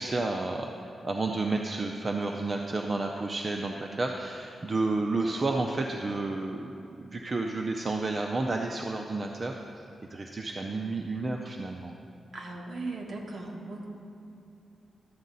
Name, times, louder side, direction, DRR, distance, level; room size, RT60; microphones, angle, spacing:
voice 1, 0.0-9.6 10.1-11.9, right 3 dB, 30° right, 2 dB, 0.5 m, -31 dB
voice 2, 12.3-13.9, right 2 dB, 50° right, -1 dB, 1.4 m, -38 dB
13.0 x 8.3 x 4.0 m, 2.7 s
wide cardioid pair, 140°, 0 cm